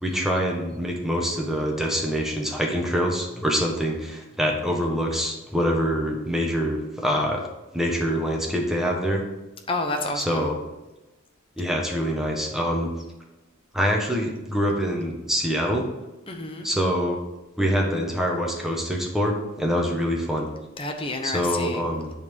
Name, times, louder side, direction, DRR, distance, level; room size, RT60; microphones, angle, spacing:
voice 1, 0.0-7.4 7.7-9.2 10.1-10.6 11.6-12.9 13.7-15.8 16.6-17.2 17.6-20.5 21.2-22.1, equal, ahead, -1 dB, 1.3 m, -25 dB
voice 2, 9.7-10.4 16.3-16.7 20.8-21.8, left 2 dB, 25° left, 3 dB, 0.9 m, -29 dB
10.5 x 4.3 x 5.4 m, 1.0 s
head